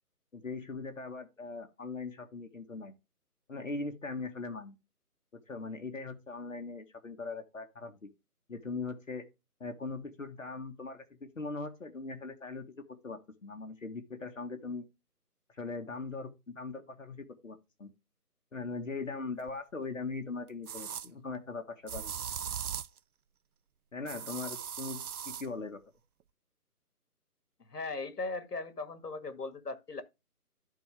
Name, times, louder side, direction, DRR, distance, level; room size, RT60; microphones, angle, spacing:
voice 1, 0.3-2.9 3.5-4.8 5.3-8.1 8.5-9.2 9.6-14.8 15.5-17.9 18.5-22.1 23.9-25.8, left 3 dB, 55° left, 1.5 m, -40 dB
sound 1, 19.5-19.6 20.7-21.1 21.9-23.0 24.1-25.5, right 8 dB, 70° right, 0.6 m, -39 dB
voice 2, 27.7-30.0, left 3 dB, 80° left, 2.0 m, -38 dB
12.5 x 4.4 x 3.4 m
figure-of-eight pair, 175°, 46 cm